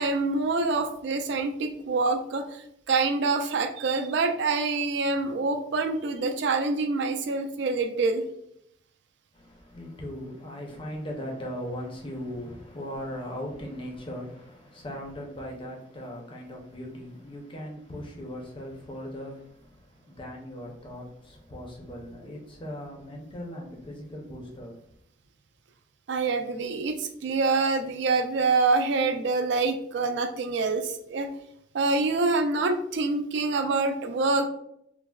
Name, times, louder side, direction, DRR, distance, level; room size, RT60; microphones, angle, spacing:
voice 1, 0.0-8.2 26.1-31.3 31.7-34.5, right 3 dB, 55° right, 0.3 m, -26 dB
voice 2, 9.3-24.7, equal, 25° left, 0.5 m, -39 dB
3.3 x 2.0 x 2.2 m
head